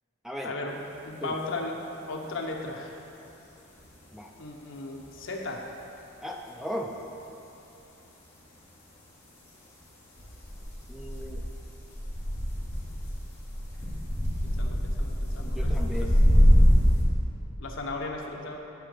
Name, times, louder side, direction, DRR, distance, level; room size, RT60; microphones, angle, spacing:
voice 1, 0.4-0.8 1.0-1.8 2.1-2.9 4.4-5.6 14.4-16.1 17.6-18.6, left 2 dB, 65° left, 1 dB, 1.0 m, -36 dB
sound 1, 0.9-1.0 3.8-3.9 10.2-17.0, equal, 15° left, 2.4 m, -24 dB
voice 2, 6.2-6.9 10.9-11.4 15.4-16.2, equal, ahead, 0 dB, 0.5 m, -36 dB
11.0 x 4.2 x 6.8 m, 2.9 s
head